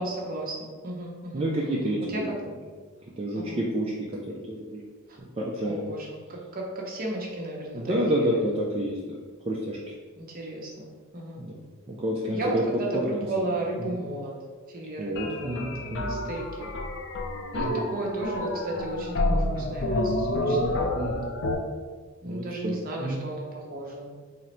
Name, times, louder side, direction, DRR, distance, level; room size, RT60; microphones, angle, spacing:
voice 1, 0.0-1.5 2.1-2.4 3.3-3.7 5.1-5.2 5.6-8.4 10.2-11.4 12.3-14.3 14.7-16.7 17.5-21.1 22.2-24.1, right 1 dB, 40° right, -2 dB, 0.8 m, -34 dB
voice 2, 1.3-2.3 3.2-4.1 4.5-4.8 5.4-5.9 7.7-9.2 9.5-9.8 11.4-12.6 12.9-13.3 13.8-14.0 15.0-16.2 17.6-17.9 20.4-21.3 22.2-23.2, right 1 dB, 25° right, -3 dB, 0.3 m, -29 dB
sound 1, 15.2-21.6, left 1 dB, 55° left, 0.4 m, -29 dB
3.8 x 2.0 x 4.3 m, 1.5 s
head